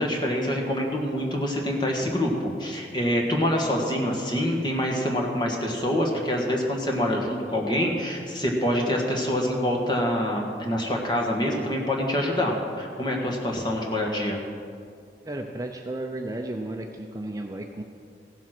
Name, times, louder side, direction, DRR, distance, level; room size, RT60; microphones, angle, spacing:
voice 1, 0.0-14.4, equal, 25° left, 0 dB, 1.6 m, -26 dB
voice 2, 15.2-17.8, right 1 dB, 20° right, 3 dB, 0.6 m, -33 dB
16.0 x 7.4 x 6.0 m, 2.3 s
head